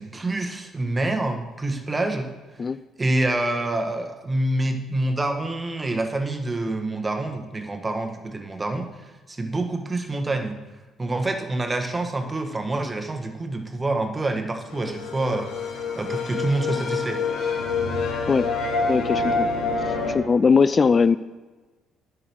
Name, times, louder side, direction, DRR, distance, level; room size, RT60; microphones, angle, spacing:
voice 1, 0.0-2.3 3.0-10.6 11.0-15.5 16.0-17.2, right 2 dB, 20° right, 5 dB, 1.4 m, -27 dB
sound 1, 14.7-20.1, left 4 dB, 80° left, 2.4 m, -26 dB
voice 2, 18.9-19.5 19.8-21.2, left 5 dB, 35° left, 14 dB, 0.3 m, -20 dB
9.9 x 6.2 x 6.3 m, 1.2 s
supercardioid pair, 80°, 0 cm